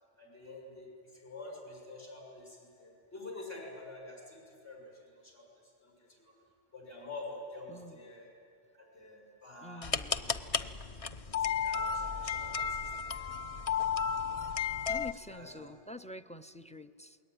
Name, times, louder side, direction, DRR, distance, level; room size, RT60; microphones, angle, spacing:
voice 1, 0.2-5.5 5.8-6.3 6.7-8.3 8.7-10.4 11.3-13.2 15.3-15.7, left 2 dB, 60° left, -1 dB, 6.7 m, -48 dB
voice 2, 7.7-8.0 9.6-10.2 14.9-17.2, left 2 dB, 10° left, 12 dB, 0.3 m, -47 dB
sound 1, 9.8-15.1, left 6 dB, 35° left, 0.7 m, -33 dB
27.5 x 21.5 x 9.6 m, 2.5 s
omnidirectional pair, 1.2 m